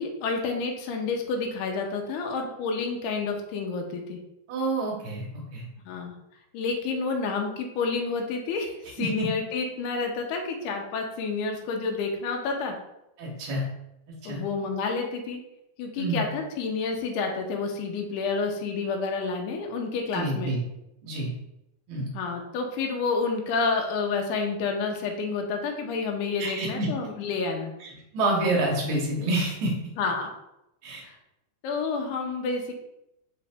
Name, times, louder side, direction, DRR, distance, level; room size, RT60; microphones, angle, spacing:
voice 1, 0.0-4.2 5.9-6.2 6.5-12.8 14.3-15.4 15.8-20.5 22.1-27.7 30.0-30.3 31.0-31.2 31.6-32.7, left 4 dB, 80° left, 2 dB, 2.1 m, -29 dB
voice 2, 4.5-5.6 9.0-9.3 13.2-13.6 14.2-14.4 16.0-16.3 20.1-20.6 21.0-21.3 21.9-22.1 26.4-26.9 27.8-29.7 30.8-31.0, right 2 dB, 75° right, -2 dB, 1.2 m, -28 dB
5.1 x 2.8 x 3.4 m, 0.85 s
omnidirectional pair, 3.7 m